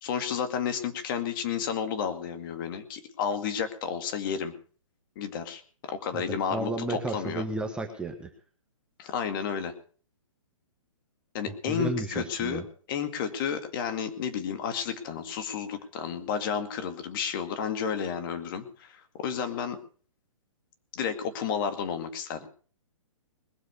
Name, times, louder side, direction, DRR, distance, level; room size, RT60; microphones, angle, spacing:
voice 1, 0.0-4.5 5.2-7.4 9.0-9.7 11.3-12.6 12.9-19.8 20.9-22.5, left 7 dB, 40° left, 8 dB, 2.2 m, -31 dB
voice 2, 6.1-8.3 11.7-12.6, right 2 dB, 5° right, 4 dB, 1.2 m, -33 dB
21.0 x 7.6 x 6.8 m, 0.43 s
hypercardioid pair, 150°, 17 cm